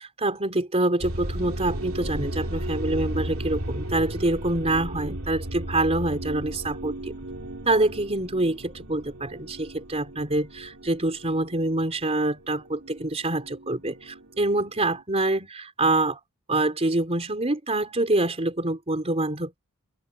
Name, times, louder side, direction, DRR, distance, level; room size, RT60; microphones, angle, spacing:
voice 1, 0.0-7.1 7.7-16.2 16.5-19.6, right 2 dB, 30° right, 3.7 m, -26 dB
sound 1, 1.0-15.0, right 1 dB, 70° right, 3.7 m, -35 dB
open air
head